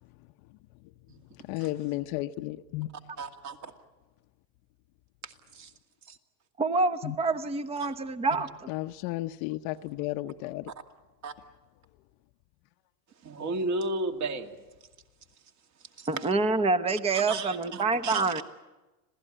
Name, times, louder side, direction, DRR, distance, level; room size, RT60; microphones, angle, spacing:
voice 1, 1.3-2.9 7.0-7.2 8.7-10.7, left 17 dB, 50° left, 0.8 m, -33 dB
voice 2, 3.2-3.7 5.2-5.7 6.0-6.2 7.8-7.9 11.2-11.3 13.2-14.6 15.8-16.3 17.1-18.4, right 2 dB, 35° right, 2.4 m, -34 dB
voice 3, 6.6-8.5 16.1-18.4, right 3 dB, 10° right, 0.9 m, -27 dB
26.5 x 17.0 x 10.0 m
supercardioid pair, 120°, 49 cm